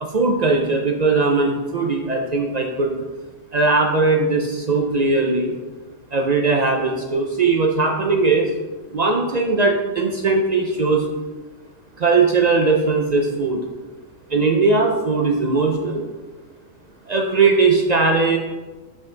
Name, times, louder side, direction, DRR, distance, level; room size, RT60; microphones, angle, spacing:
voice 1, 0.0-3.0 3.5-5.5 6.1-8.5 8.9-11.0 12.0-13.6 14.3-16.0 17.1-18.4, right 3 dB, 55° right, 2 dB, 0.4 m, -19 dB
5.8 x 5.0 x 3.8 m, 1.2 s
omnidirectional pair, 1.4 m